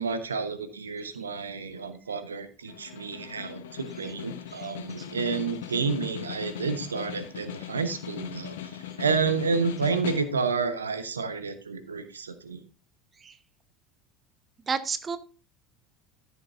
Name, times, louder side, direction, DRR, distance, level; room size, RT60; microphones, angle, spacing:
voice 1, 0.0-8.6 9.0-12.6, right 4 dB, 80° right, 10 dB, 1.0 m, -30 dB
Snare drum, 2.7-10.6, left 11 dB, 65° left, 1.0 m, -39 dB
voice 2, 4.6-5.1 13.2-13.4 14.7-15.2, right 5 dB, 25° right, 12 dB, 0.9 m, -32 dB
14.0 x 7.2 x 2.5 m, 0.34 s
figure-of-eight pair, 70°, 0 cm